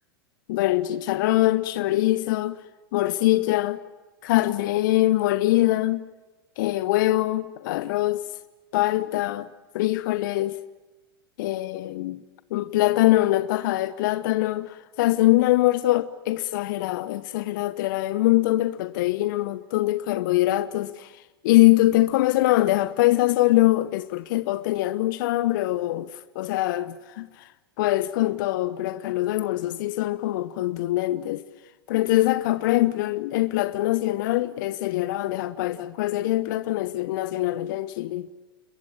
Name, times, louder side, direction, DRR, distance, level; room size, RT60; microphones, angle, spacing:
voice 1, 0.5-2.6 2.9-3.8 4.2-6.1 6.6-8.3 8.7-9.5 9.7-10.6 11.4-12.2 12.5-21.1 21.4-27.5 27.8-31.4 31.9-38.3, left 16 dB, 55° left, 1.1 m, -23 dB
30.0 x 21.5 x 9.1 m
figure-of-eight pair, 95°, 12 cm